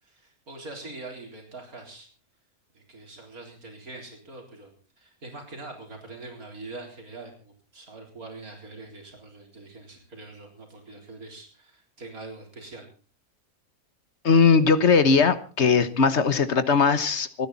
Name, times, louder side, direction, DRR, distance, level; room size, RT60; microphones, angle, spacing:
voice 1, 0.0-2.1 2.7-12.9, right 2 dB, 80° right, 2 dB, 4.5 m, -43 dB
voice 2, 14.2-17.5, left 5 dB, 50° left, 13 dB, 1.4 m, -19 dB
27.5 x 10.0 x 4.1 m, 0.36 s
omnidirectional pair, 1.5 m